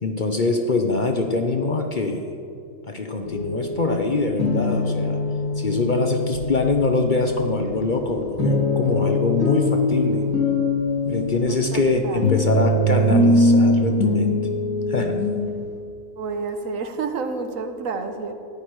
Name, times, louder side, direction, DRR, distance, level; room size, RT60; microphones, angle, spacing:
voice 1, 0.0-2.3 2.8-5.2 5.6-10.2 11.0-14.3 14.9-15.1, left 3 dB, 40° left, 4 dB, 0.8 m, -24 dB
sound 1, 3.2-15.5, left 1 dB, 80° left, 3.7 m, -22 dB
voice 2, 11.5-12.6 16.2-18.3, right 4 dB, 70° right, 7 dB, 1.4 m, -30 dB
14.0 x 10.5 x 4.7 m, 2.5 s
omnidirectional pair, 1.5 m